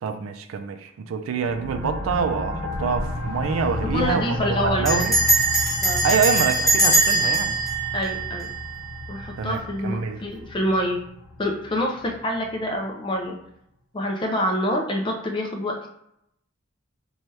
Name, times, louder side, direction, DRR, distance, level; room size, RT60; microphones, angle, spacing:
voice 1, 0.0-5.1 6.0-7.6 9.4-10.2, right 5 dB, 80° right, 8 dB, 0.3 m, -26 dB
sound 1, 1.4-12.8, left 1 dB, 30° right, 0.6 m, -33 dB
Bell, 2.7-3.1 3.4-3.5 3.7-4.1 4.9-8.9, right 2 dB, ahead, 1.1 m, -22 dB
voice 2, 3.9-5.0 5.8-6.0 7.9-8.5 9.1-11.0 11.4-13.4 13.9-15.8, left 1 dB, 25° left, 1 dB, 0.4 m, -26 dB
2.7 x 2.3 x 3.1 m, 0.76 s
head